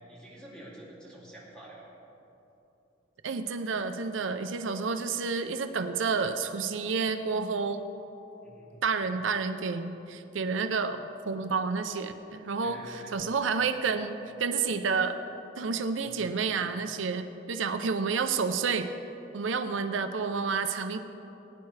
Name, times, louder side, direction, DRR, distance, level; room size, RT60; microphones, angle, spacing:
voice 1, 0.1-1.9 8.4-8.8 12.6-13.1 16.0-16.3, right 1 dB, 5° left, -6 dB, 2.5 m, -48 dB
voice 2, 3.2-7.9 8.8-15.2 15.6-18.9 19.3-21.0, right 5 dB, 85° right, 8 dB, 0.6 m, -30 dB
19.5 x 9.4 x 3.3 m, 3.0 s
head